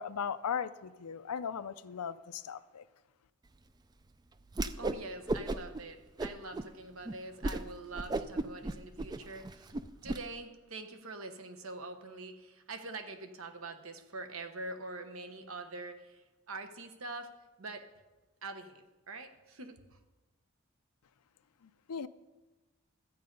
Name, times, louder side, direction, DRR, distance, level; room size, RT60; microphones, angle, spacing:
voice 1, 0.0-2.8 21.6-22.1, left 7 dB, 85° left, 14 dB, 0.5 m, -38 dB
Whoosh swoosh swish, 4.5-5.0 5.3-5.8 6.2-6.7 7.1-7.2 7.4-7.6 7.9-10.2, right 2 dB, 20° right, 0.3 m, -34 dB
voice 2, 4.7-9.8 10.0-17.3 17.6-17.9 18.4-20.0, right 3 dB, 65° right, 8 dB, 1.1 m, -44 dB
13.0 x 8.6 x 5.3 m, 1.2 s
head